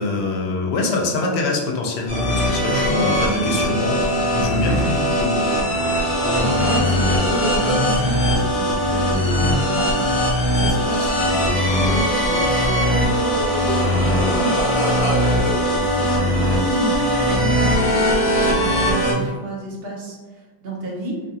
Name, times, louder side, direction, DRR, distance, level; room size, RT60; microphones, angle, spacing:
voice 1, 0.0-5.5 17.4-17.5, left 3 dB, 80° left, 0 dB, 0.8 m, -24 dB
sound 1, 2.1-19.1, equal, 35° left, 0.6 m, -20 dB
sound 2, 2.4-19.3, right 1 dB, 45° right, 0.5 m, -33 dB
voice 2, 5.9-12.9 13.8-21.2, right 1 dB, 65° right, -3 dB, 0.9 m, -30 dB
2.6 x 2.3 x 2.6 m, 1.3 s
omnidirectional pair, 1.1 m